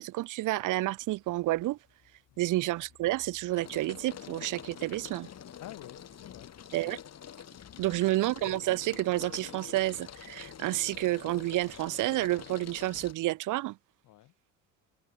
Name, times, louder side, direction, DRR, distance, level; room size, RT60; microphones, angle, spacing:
voice 1, 0.0-1.8 2.4-5.3 6.7-7.0 7.8-13.8, right 17 dB, 85° right, 1.0 m, -30 dB
sound 1, 1.1-1.6 2.0-13.1, left 9 dB, 55° left, 4.6 m, -47 dB
voice 2, 5.6-6.5 7.7-8.2 14.0-14.3, left 15 dB, 90° left, 6.9 m, -50 dB
cardioid pair, 90°, 30 cm